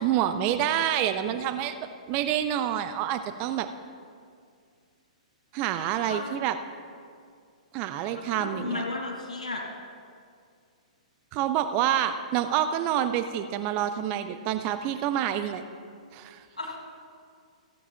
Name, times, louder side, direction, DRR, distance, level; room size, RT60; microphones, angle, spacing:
voice 1, 0.0-1.7 2.1-3.7 5.5-6.6 7.7-8.8 11.3-15.6 16.1-16.4, right 10 dB, 35° right, 9 dB, 0.6 m, -27 dB
voice 2, 6.1-6.4 8.1-9.6 16.6-16.8, left 3 dB, 75° left, -3 dB, 2.0 m, -34 dB
15.5 x 8.3 x 4.4 m, 2.2 s
figure-of-eight pair, 115°, 4 cm